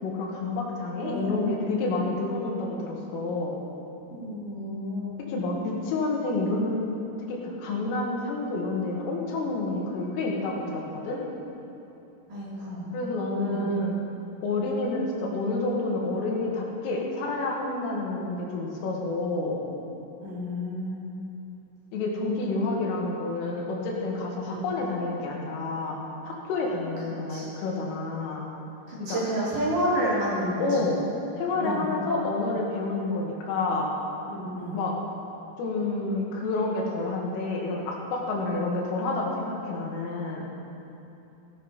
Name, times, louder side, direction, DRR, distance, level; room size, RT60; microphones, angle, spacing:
voice 1, 0.0-3.6 5.3-6.9 7.3-11.2 12.9-14.0 14.4-19.6 21.9-26.0 26.3-28.5 29.1-29.2 30.6-31.0 31.3-34.0 34.7-34.9 35.6-40.5, left 2 dB, 80° left, -2 dB, 4.2 m, -29 dB
voice 2, 1.0-1.8 4.1-5.2 12.3-13.0 13.4-13.7 20.2-21.0 24.5-24.6 27.3-27.5 28.9-30.6 31.6-31.9 34.3-34.8 38.4-38.6, equal, 45° right, -8 dB, 3.6 m, -30 dB
14.5 x 14.0 x 4.1 m, 2.9 s
omnidirectional pair, 5.9 m